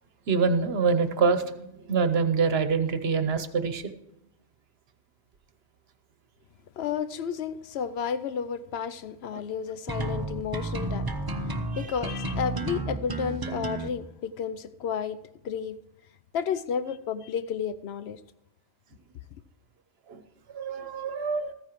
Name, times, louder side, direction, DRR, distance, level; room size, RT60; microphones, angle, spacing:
voice 1, 0.3-3.8 20.1-20.2 20.5-21.5, right 5 dB, 60° right, 1.1 m, -25 dB
voice 2, 6.8-11.1 11.8-15.2 15.4-15.8 16.3-18.2, left 7 dB, 70° left, 0.8 m, -32 dB
sound 1, 9.9-13.9, right 2 dB, 25° right, 0.5 m, -31 dB
14.5 x 14.0 x 3.0 m
omnidirectional pair, 1.2 m